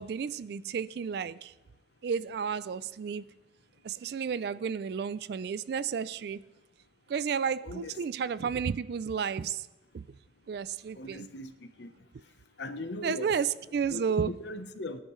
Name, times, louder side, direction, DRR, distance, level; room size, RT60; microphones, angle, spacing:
voice 1, 0.0-1.5 2.0-3.3 3.8-6.4 7.1-9.7 9.9-10.0 10.5-11.3 13.0-14.4, right 6 dB, 60° right, 0.3 m, -32 dB
voice 2, 7.6-8.0 11.0-11.5 11.8-11.9 12.6-13.4 13.9-15.0, left 2 dB, 75° left, 0.9 m, -39 dB
24.0 x 10.0 x 3.1 m
head